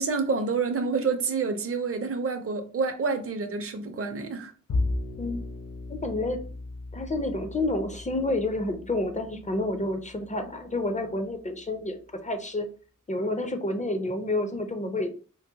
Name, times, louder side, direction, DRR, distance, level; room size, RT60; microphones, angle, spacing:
voice 1, 0.0-4.5, right 4 dB, 45° right, 0.5 m, -28 dB
Bowed string instrument, 4.7-11.1, left 2 dB, 75° left, 0.8 m, -36 dB
voice 2, 5.9-6.4 6.9-12.7 13.1-15.1, left 2 dB, 25° left, 0.4 m, -29 dB
3.8 x 2.0 x 2.7 m
wide cardioid pair, 55°, 33 cm